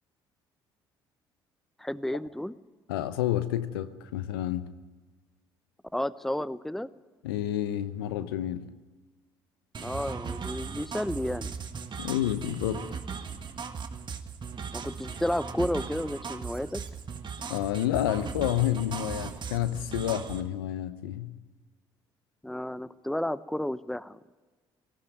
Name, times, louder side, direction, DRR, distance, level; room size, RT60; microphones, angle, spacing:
voice 1, 1.8-2.5 5.9-6.9 9.8-11.5 14.7-16.8 22.4-24.2, left 1 dB, ahead, 0.7 m, -32 dB
voice 2, 2.9-4.7 7.2-8.7 12.0-12.9 17.5-21.3, left 12 dB, 80° left, 0.9 m, -29 dB
sound 1, 9.7-20.4, right 5 dB, 40° right, 1.8 m, -38 dB
18.5 x 15.5 x 9.3 m
hypercardioid pair, 55°, 12 cm